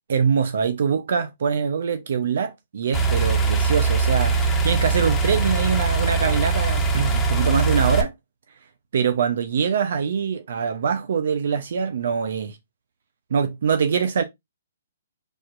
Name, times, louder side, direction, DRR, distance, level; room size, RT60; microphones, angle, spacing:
voice 1, 0.1-8.1 8.9-12.6 13.3-14.2, right 6 dB, 65° right, 0.8 m, -23 dB
sound 1, 2.9-8.0, right 4 dB, 10° left, 1.3 m, -21 dB
4.8 x 4.3 x 2.6 m
hypercardioid pair, 135°, 0 cm